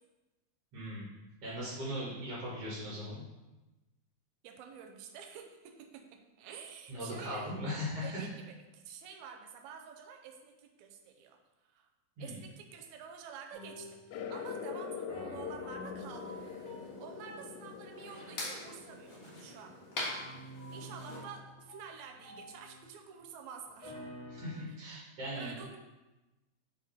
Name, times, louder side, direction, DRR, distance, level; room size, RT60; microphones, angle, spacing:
voice 1, 0.7-1.0 1.4-3.2 6.9-8.3 12.2-12.4 24.3-25.5, equal, 55° right, -8 dB, 2.8 m, -39 dB
voice 2, 4.4-6.0 6.4-7.5 8.0-8.4 8.7-11.4 11.7-11.9 12.2-16.4 17.0-19.8 20.7-23.9 24.7-24.8 25.3-25.8, right 7 dB, 80° right, 3 dB, 2.0 m, -49 dB
sound 1, 13.5-14.7 15.1-23.2 23.7-24.5, equal, 25° left, 0.5 m, -50 dB
sound 2, 14.1-20.3, left 7 dB, 80° left, 2.0 m, -44 dB
sound 3, 16.1-21.2, left 2 dB, 50° left, 1.2 m, -44 dB
5.2 x 5.1 x 4.2 m, 1.1 s
omnidirectional pair, 3.4 m